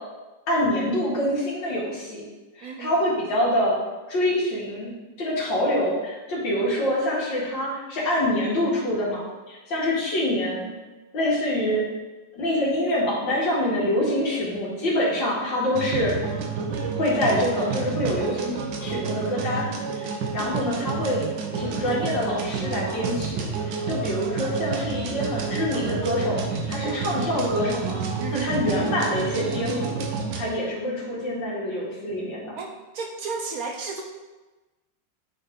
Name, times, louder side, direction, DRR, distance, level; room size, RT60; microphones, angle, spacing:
voice 1, 0.5-2.2 2.6-3.8 4.1-4.9 5.2-9.2 9.5-10.7 11.1-11.8 12.3-16.1 16.9-19.7 20.0-21.2 21.5-26.4 26.7-28.0 28.3-30.0 30.3-32.6, left 1 dB, 85° left, -6 dB, 2.7 m, -25 dB
voice 2, 2.6-3.0 28.2-28.6 32.6-34.0, right 4 dB, 65° right, 2 dB, 0.9 m, -33 dB
sound 1, 15.8-30.4, right 5 dB, 85° right, 1.5 m, -29 dB
9.3 x 4.2 x 3.7 m, 1.2 s
omnidirectional pair, 1.9 m